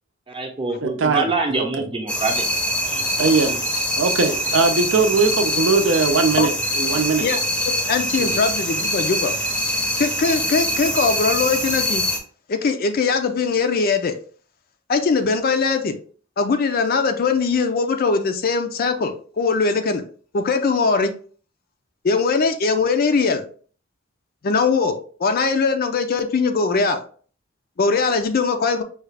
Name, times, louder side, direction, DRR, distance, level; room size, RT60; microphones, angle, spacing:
voice 1, 0.3-2.5 2.9-3.1, right 3 dB, 25° right, 1 dB, 0.7 m, -25 dB
voice 2, 0.8-1.3 1.6-1.7 3.2-3.6 4.0-6.5 6.7-7.3 8.2-8.4, right 4 dB, 70° right, 7 dB, 0.6 m, -20 dB
sound 1, 2.1-12.2, equal, 5° left, 0.7 m, -24 dB
voice 3, 7.7-9.3 10.0-12.0 12.5-14.1 14.9-16.0 16.4-20.0 20.3-21.1 22.0-23.4 24.4-24.9 25.2-27.0 27.8-28.8, left 4 dB, 50° left, 7 dB, 0.4 m, -21 dB
4.8 x 2.4 x 3.3 m, 0.43 s
head